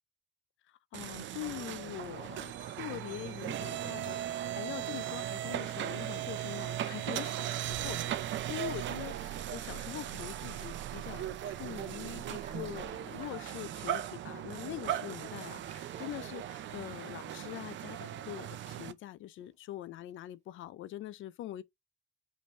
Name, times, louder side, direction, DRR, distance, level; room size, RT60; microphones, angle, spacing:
voice 1, 0.7-21.6, left 14 dB, 80° left, 0.5 m, -44 dB
sound 1, 0.9-18.9, right 11 dB, 70° right, 0.6 m, -38 dB
Run, 2.9-10.2 10.5-10.9 11.3-13.4 14.0-14.6 14.8-15.1 15.6-16.7 17.0-17.8 18.2-18.4 18.7-19.1 19.4-19.5 20.0-20.2 20.5-20.6, right 5 dB, 35° right, 1.3 m, -58 dB
5.3 x 2.7 x 3.1 m
cardioid pair, 90°, 20 cm